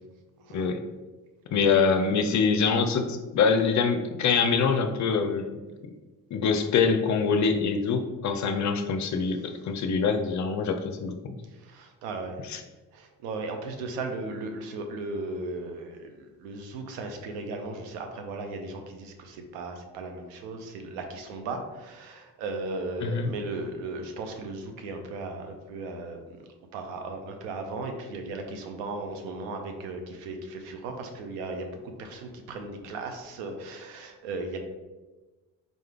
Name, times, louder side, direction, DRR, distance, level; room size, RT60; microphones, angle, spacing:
voice 1, 1.5-5.6 6.3-11.4 12.4-12.6 23.0-23.3, left 5 dB, 40° left, 6 dB, 0.5 m, -25 dB
voice 2, 11.6-12.4 12.9-26.4 26.7-31.7 32.0-34.6, right 3 dB, 65° right, 5 dB, 0.8 m, -36 dB
3.9 x 3.2 x 3.7 m, 1.2 s
figure-of-eight pair, 45°, 47 cm